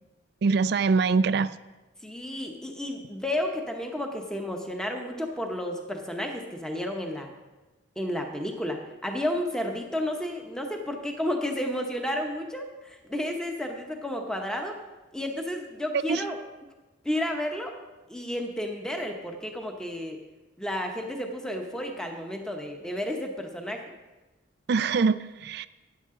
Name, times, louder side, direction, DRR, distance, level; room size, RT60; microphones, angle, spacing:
voice 1, 0.4-1.5 16.1-16.2 24.7-25.7, right 4 dB, 55° right, 0.4 m, -23 dB
voice 2, 2.0-7.3 8.0-14.8 15.1-16.4 17.0-17.7 18.1-20.2 20.6-23.8, left 1 dB, 5° left, 0.9 m, -32 dB
13.5 x 9.6 x 3.8 m
head